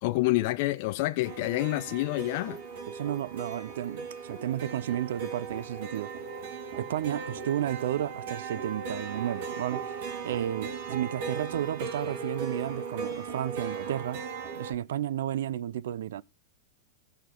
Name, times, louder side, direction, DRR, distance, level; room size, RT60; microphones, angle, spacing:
voice 1, 0.0-2.6, left 19 dB, 55° left, 0.6 m, -28 dB
sound 1, 1.2-14.7, right 5 dB, 60° right, 2.8 m, -38 dB
voice 2, 2.9-6.1 6.8-14.2 14.5-16.2, right 11 dB, 80° right, 0.5 m, -32 dB
15.5 x 5.9 x 3.8 m
supercardioid pair, 145°, 0 cm